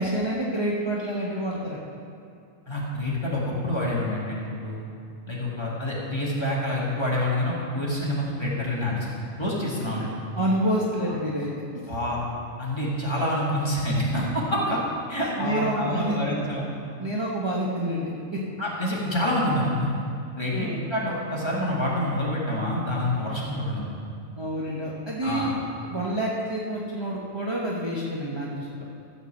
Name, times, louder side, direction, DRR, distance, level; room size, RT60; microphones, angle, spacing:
voice 1, 0.0-1.8 10.4-11.5 15.2-16.2 17.0-18.4 20.5-20.8 24.4-25.5 25.8-28.7, right 1 dB, 20° right, -5 dB, 1.0 m, -28 dB
voice 2, 2.7-4.8 5.3-10.1 11.9-12.2 12.6-14.8 15.1-16.7 18.6-19.9 20.4-23.8 25.2-25.5, left 1 dB, 20° left, -6 dB, 2.3 m, -27 dB
13.5 x 5.3 x 7.6 m, 2.4 s
omnidirectional pair, 1.4 m